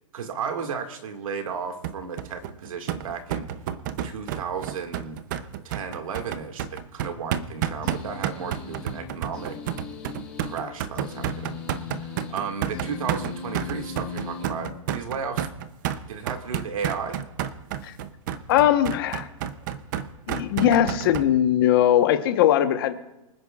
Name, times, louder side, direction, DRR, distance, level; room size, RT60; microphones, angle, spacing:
voice 1, 0.1-3.5 4.0-5.2 5.6-9.6 10.4-11.6 11.9-15.5 16.1-17.2, right 6 dB, 80° right, 5 dB, 2.0 m, -34 dB
sound 1, 1.8-21.3, right 10 dB, 35° right, 0.7 m, -31 dB
sound 2, 7.8-15.2, left 7 dB, 10° left, 4.6 m, -39 dB
voice 2, 18.5-19.3 20.3-23.0, left 11 dB, 40° left, 8 dB, 1.1 m, -20 dB
25.5 x 9.7 x 2.4 m, 0.98 s
hypercardioid pair, 165°, 17 cm